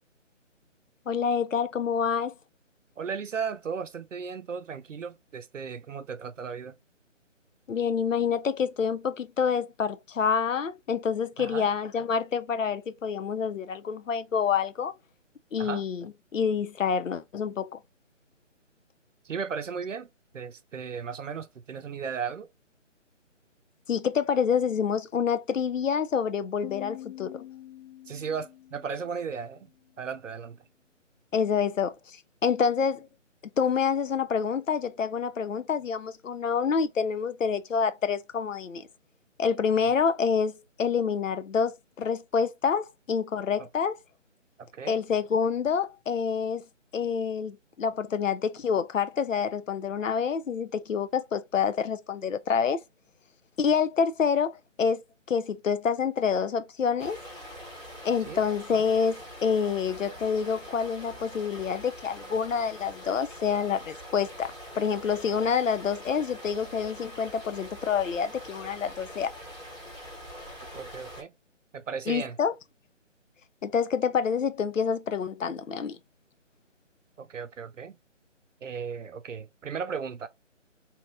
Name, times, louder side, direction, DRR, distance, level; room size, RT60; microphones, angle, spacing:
voice 1, 1.1-2.3 7.7-14.9 15.5-17.8 23.9-27.4 31.3-33.1 33.6-38.9 39.4-44.0 44.9-46.6 46.9-52.8 53.6-55.0 55.3-57.2 58.0-69.3 72.1-72.5 73.6-76.0, left 6 dB, 80° left, 0.6 m, -27 dB
voice 2, 3.0-6.7 11.4-11.7 15.6-15.8 19.2-20.1 20.3-22.5 28.1-29.7 30.0-30.6 43.6-43.7 44.6-45.0 58.2-58.4 70.7-71.3 71.7-72.4 77.2-78.0 78.6-80.3, right 6 dB, 75° right, 0.6 m, -35 dB
Piano, 26.6-30.1, left 13 dB, 25° left, 0.8 m, -45 dB
sound 1, 57.0-71.2, equal, 5° left, 1.1 m, -44 dB
2.9 x 2.5 x 3.3 m
figure-of-eight pair, 155°, 38 cm